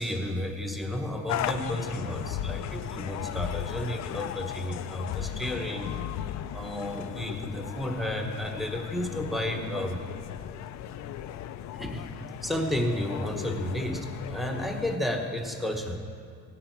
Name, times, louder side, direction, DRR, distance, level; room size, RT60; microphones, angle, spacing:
voice 1, 0.0-6.0 6.5-10.0 11.7-16.0, left 1 dB, ahead, 3 dB, 1.2 m, -32 dB
sound 1, 1.3-15.0, left 11 dB, 65° left, 0.5 m, -36 dB
16.5 x 11.0 x 4.7 m, 2.3 s
cardioid pair, 130°, 30 cm